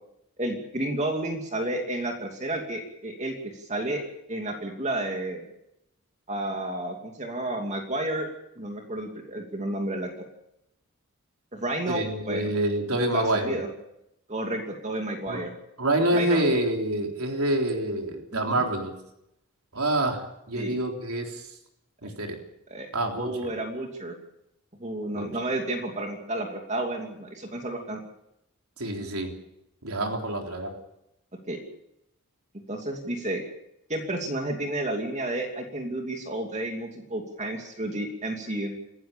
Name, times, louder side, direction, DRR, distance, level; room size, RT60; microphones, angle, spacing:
voice 1, 0.4-4.0 4.3-5.5 6.3-8.3 8.6-10.1 11.5-12.4 12.9-13.7 14.3-15.5 16.1-16.4 18.3-18.6 20.5-20.8 22.7-22.9 23.2-24.1 24.8-28.0 31.5-31.6 32.7-33.4 33.9-38.7, right 1 dB, 30° right, 2 dB, 2.8 m, -31 dB
voice 2, 11.9-13.6 15.3-15.5 15.8-18.9 19.7-21.4 22.0-22.4 22.9-23.5 25.2-25.3 28.8-29.3 29.8-30.7, right 1 dB, 80° right, 2 dB, 3.7 m, -27 dB
27.0 x 15.0 x 6.9 m, 0.82 s
head